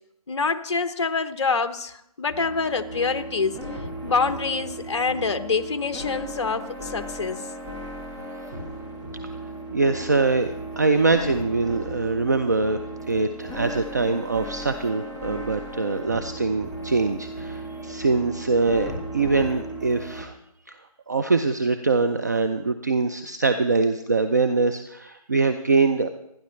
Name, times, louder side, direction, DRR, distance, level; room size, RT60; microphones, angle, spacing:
voice 1, 0.3-3.6 4.0-7.4, left 4 dB, 45° left, 10 dB, 0.9 m, -26 dB
sound 1, 2.3-20.2, right 1 dB, 10° right, 1.3 m, -36 dB
voice 2, 9.7-12.8 13.1-20.3 20.7-20.8 21.1-26.1, right 3 dB, 30° right, 8 dB, 0.4 m, -23 dB
28.0 x 10.0 x 3.2 m, 0.81 s
figure-of-eight pair, 165°, 19 cm